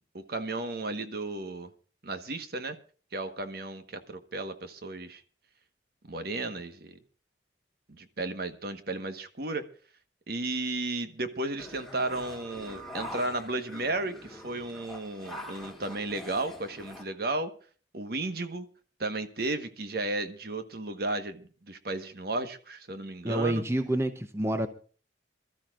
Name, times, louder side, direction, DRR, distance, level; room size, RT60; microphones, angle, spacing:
voice 1, 0.1-1.7 2.0-2.8 3.1-5.2 6.0-7.0 7.9-9.6 10.3-17.5 17.9-18.7 19.0-23.6, right 2 dB, 55° right, 1.4 m, -34 dB
sound 1, 11.6-17.0, left 1 dB, ahead, 2.2 m, -44 dB
voice 2, 23.2-24.7, right 1 dB, 15° right, 0.8 m, -28 dB
26.5 x 13.5 x 2.5 m
head